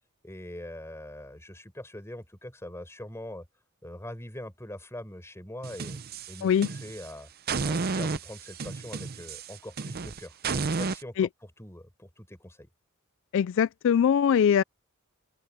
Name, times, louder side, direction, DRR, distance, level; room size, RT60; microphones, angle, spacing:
voice 1, 0.2-3.5 3.8-6.0 6.3-6.5 6.8-7.3 7.6-11.3 11.6-12.7, left 1 dB, 10° left, 4.3 m, -42 dB
sound 1, 5.6-7.1 7.5-11.0, right 4 dB, 45° right, 0.6 m, -32 dB
voice 2, 13.3-14.6, left 8 dB, 60° left, 0.3 m, -22 dB
open air
head